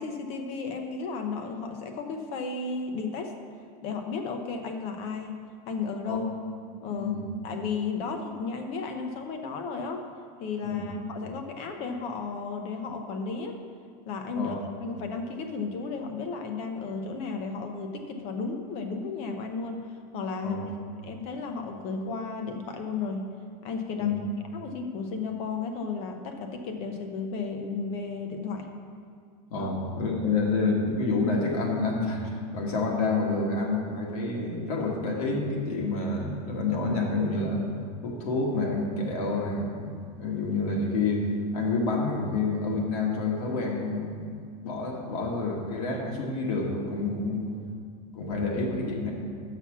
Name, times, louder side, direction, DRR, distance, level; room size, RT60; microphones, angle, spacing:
voice 1, 0.0-3.3 3.8-5.4 5.7-6.3 6.8-7.2 7.4-10.0 10.4-13.6 14.1-14.5 14.8-19.9 20.1-20.6 21.0-23.3 23.6-24.2 24.5-28.7 29.6-29.7, left 4 dB, 35° left, 5 dB, 0.6 m, -34 dB
voice 2, 29.5-37.7 38.0-41.2 41.5-44.2 44.6-47.5 48.1-49.1, left 3 dB, 70° left, -1 dB, 1.6 m, -28 dB
5.9 x 5.8 x 7.1 m, 2.2 s
supercardioid pair, 175°, 19 cm